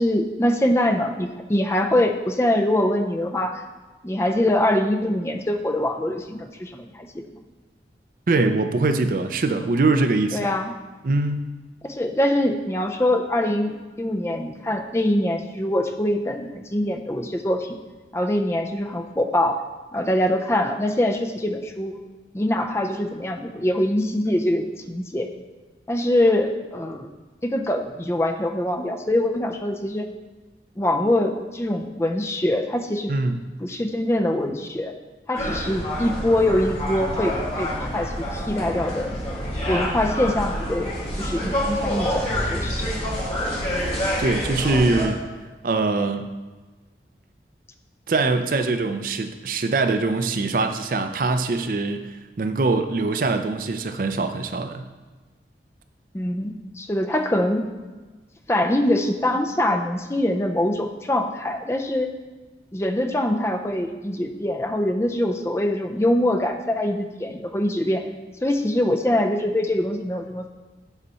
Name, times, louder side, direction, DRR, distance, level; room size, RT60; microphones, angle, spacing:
voice 1, 0.0-3.6 4.0-7.1 10.3-10.7 11.8-17.8 18.1-19.6 19.9-22.0 22.3-25.3 25.9-27.1 27.4-30.1 30.8-33.1 33.6-34.9 35.3-39.1 39.7-43.0 56.1-57.7 58.5-62.1 62.7-68.1 68.4-70.5, left 1 dB, 15° left, 5 dB, 0.4 m, -23 dB
voice 2, 8.3-10.4 11.0-11.5 33.1-33.4 44.2-45.2 45.6-46.3 48.1-54.9, right 3 dB, 50° right, 8 dB, 0.4 m, -23 dB
sound 1, 35.3-45.1, equal, 35° left, 2.0 m, -27 dB
8.1 x 4.1 x 5.5 m, 1.3 s
head